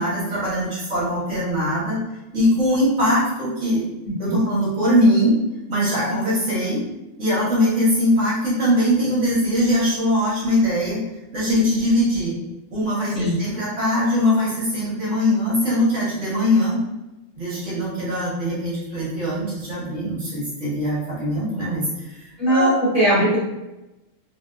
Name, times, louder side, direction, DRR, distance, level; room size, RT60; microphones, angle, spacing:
voice 1, 0.0-2.0 2.3-3.8 4.2-5.4 5.7-6.8 7.2-11.0 11.3-12.3 12.7-16.8 17.3-22.7, equal, 70° right, -7 dB, 1.4 m, -21 dB
voice 2, 4.0-4.4 13.1-13.4 22.4-23.4, right 1 dB, 30° left, -10 dB, 1.6 m, -20 dB
3.0 x 2.8 x 2.3 m, 0.99 s
omnidirectional pair, 1.3 m